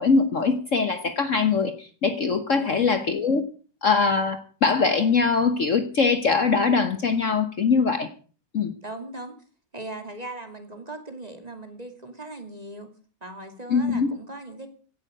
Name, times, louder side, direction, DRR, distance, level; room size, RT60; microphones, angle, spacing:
voice 1, 0.0-3.4 3.8-8.1 8.5-8.7 13.7-14.1, left 4 dB, 50° left, 10 dB, 1.4 m, -22 dB
voice 2, 2.5-2.9 8.8-9.3 9.7-12.9 13.2-14.7, right 2 dB, 20° right, 6 dB, 2.8 m, -38 dB
16.5 x 11.5 x 6.4 m, 0.40 s
omnidirectional pair, 1.9 m